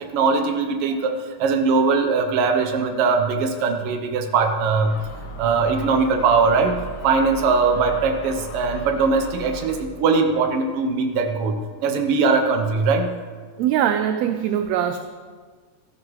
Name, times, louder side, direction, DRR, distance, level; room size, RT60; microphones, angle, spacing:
voice 1, 0.1-1.1 1.4-5.0 5.4-13.1, right 4 dB, 65° right, 5 dB, 1.6 m, -20 dB
Gull seagull, 4.8-9.8, equal, 80° left, 2.2 m, -37 dB
voice 2, 13.6-15.0, right 10 dB, 80° right, 8 dB, 1.6 m, -22 dB
14.5 x 11.0 x 3.2 m, 1.5 s
omnidirectional pair, 3.3 m